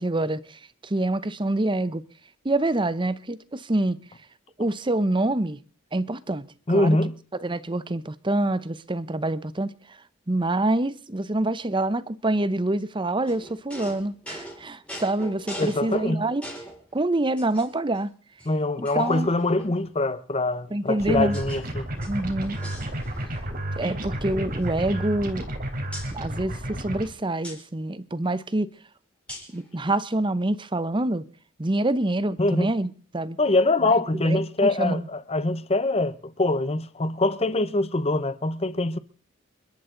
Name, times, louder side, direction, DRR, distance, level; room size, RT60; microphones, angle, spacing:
voice 1, 0.0-2.0 2.4-4.0 4.6-5.6 5.9-7.0 7.4-10.0 10.3-16.4 16.9-18.1 18.8-19.3 20.7-21.4 22.1-22.6 23.8-25.5 26.1-28.7 29.5-31.2 31.6-33.4 33.8-34.0 34.2-35.1, right 2 dB, 25° right, 0.7 m, -26 dB
voice 2, 6.7-7.1 15.6-16.3 18.5-21.9 32.4-32.7 33.4-39.0, left 2 dB, 30° left, 0.9 m, -24 dB
sound 1, 13.3-16.8 17.4-18.0 18.4-18.5 18.8-19.9 20.7-21.6 21.9-23.5 23.7-23.9 24.2-25.5 25.9-26.1 27.4-27.6 29.3-29.6, equal, 5° left, 5.5 m, -42 dB
sound 2, 21.0-27.0, right 1 dB, 45° right, 3.5 m, -32 dB
28.5 x 12.5 x 3.9 m
head